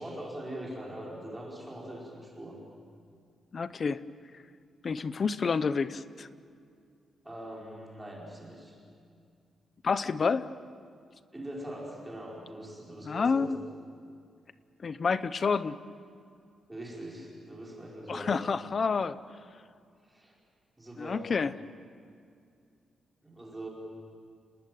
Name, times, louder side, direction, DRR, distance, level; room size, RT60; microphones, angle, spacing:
voice 1, 0.0-2.6 7.2-8.8 11.3-13.5 16.7-18.4 20.0-20.3 20.8-21.2 23.2-23.7, right 1 dB, 10° right, -3 dB, 4.8 m, -42 dB
voice 2, 3.5-4.0 4.8-6.3 9.8-10.5 13.0-13.6 14.8-15.8 18.1-19.2 21.0-21.5, left 5 dB, 35° left, 15 dB, 0.7 m, -29 dB
30.0 x 19.5 x 9.2 m, 2.3 s
wide cardioid pair, 180°, 0 cm